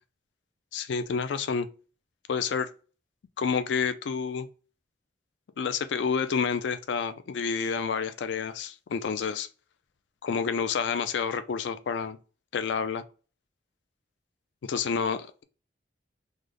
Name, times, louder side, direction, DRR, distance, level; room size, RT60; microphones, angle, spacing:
voice 1, 0.7-1.7 2.3-2.7 3.4-4.5 5.6-9.5 10.2-12.2 12.5-13.0 14.6-15.4, left 6 dB, 80° left, 0.4 m, -29 dB
3.2 x 2.0 x 3.7 m
head